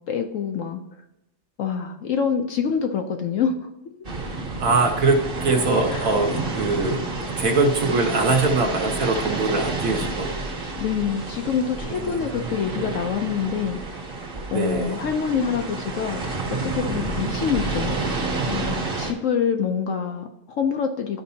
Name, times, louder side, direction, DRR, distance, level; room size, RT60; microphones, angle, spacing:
voice 1, 0.1-0.8 1.6-3.7 5.9-6.1 10.8-13.8 14.5-16.2 16.5-18.0 18.5-21.2, left 7 dB, 65° left, 5 dB, 0.8 m, -26 dB
sound 1, 4.0-19.1, right 3 dB, 35° right, 1.2 m, -29 dB
voice 2, 4.6-7.0 7.4-10.3 11.9-12.5 14.5-15.0, right 3 dB, 60° right, 2 dB, 1.2 m, -22 dB
12.0 x 5.3 x 2.7 m, 0.93 s
omnidirectional pair, 1.8 m